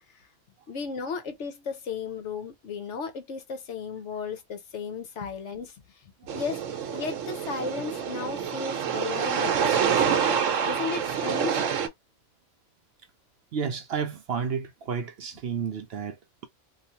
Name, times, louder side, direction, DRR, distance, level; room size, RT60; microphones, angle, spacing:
voice 1, 0.7-5.7 6.3-6.6 6.9-10.3 10.6-11.6, left 5 dB, 70° left, 1.1 m, -35 dB
sound 1, 6.3-11.9, right 7 dB, 85° right, 1.1 m, -27 dB
voice 2, 13.5-16.5, right 6 dB, 60° right, 0.7 m, -32 dB
3.1 x 2.4 x 2.7 m
omnidirectional pair, 1.3 m